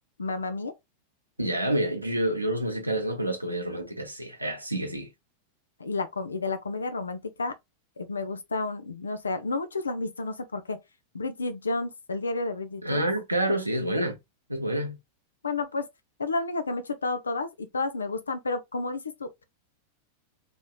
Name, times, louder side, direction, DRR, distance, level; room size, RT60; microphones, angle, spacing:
voice 1, 0.2-0.7 5.8-7.5 8.0-10.8 11.1-13.0 15.4-15.9 16.2-19.4, left 3 dB, 75° left, 0.5 m, -31 dB
voice 2, 1.4-5.1 12.8-14.2 14.5-15.0, right 1 dB, 85° right, 0.7 m, -28 dB
3.5 x 3.0 x 2.4 m
figure-of-eight pair, 90°, 0 cm